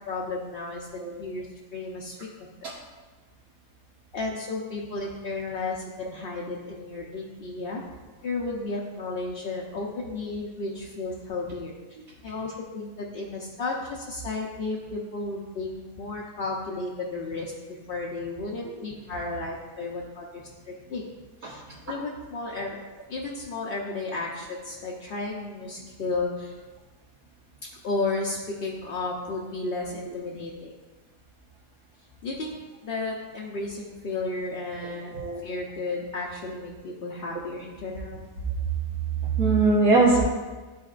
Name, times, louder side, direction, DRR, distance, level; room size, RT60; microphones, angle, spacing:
voice 1, 0.1-1.5 1.7-2.5 4.1-7.8 8.2-11.7 12.2-17.5 17.9-21.1 21.4-22.8 23.1-26.6 27.8-30.7 32.2-32.6 32.8-35.1 35.4-38.2, left 3 dB, 50° left, -3 dB, 0.7 m, -33 dB
voice 2, 35.1-35.5 39.2-40.2, right 3 dB, 85° right, -8 dB, 1.7 m, -22 dB
12.0 x 4.3 x 2.5 m, 1.3 s
omnidirectional pair, 1.5 m